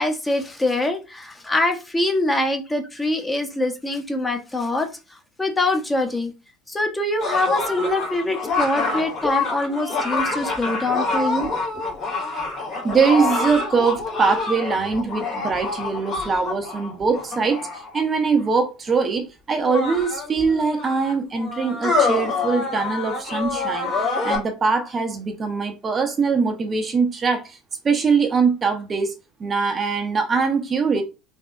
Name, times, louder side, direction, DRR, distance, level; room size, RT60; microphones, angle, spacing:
voice 1, 0.0-4.9 5.4-6.3 6.7-11.6, left 2 dB, 15° left, 0.9 m, -24 dB
sound 1, 7.2-18.0 18.9-19.0 19.6-24.4, left 3 dB, 45° left, 2.0 m, -26 dB
voice 2, 12.8-23.9 24.2-27.6 27.8-29.1 29.4-31.0, right 5 dB, 30° right, 0.7 m, -22 dB
3.7 x 3.4 x 2.4 m
hypercardioid pair, 70°, 0 cm